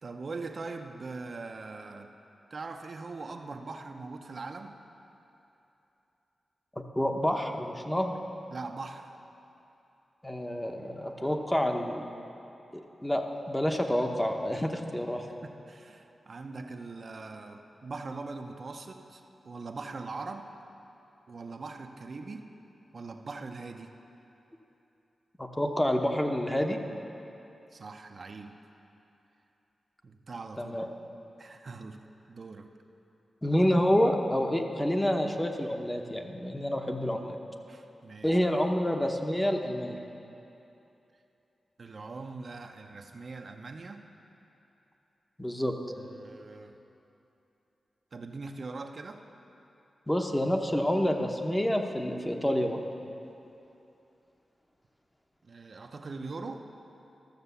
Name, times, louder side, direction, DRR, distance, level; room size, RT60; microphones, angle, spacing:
voice 1, 0.0-2.1 2.5-4.8 8.5-9.2 15.3-20.5 21.3-22.5 22.9-24.0 27.7-28.7 30.0-30.8 31.4-32.7 37.7-38.4 41.8-44.1 46.0-46.8 48.1-49.2 55.4-56.7, right 3 dB, 55° right, 5 dB, 0.6 m, -41 dB
voice 2, 6.8-8.2 10.2-12.1 12.7-15.2 25.4-26.8 30.6-30.8 33.4-37.4 38.2-40.0 45.4-45.7 50.1-52.9, equal, 10° left, 3 dB, 0.8 m, -28 dB
13.0 x 6.8 x 6.9 m, 2.9 s
cardioid pair, 80°, 0 cm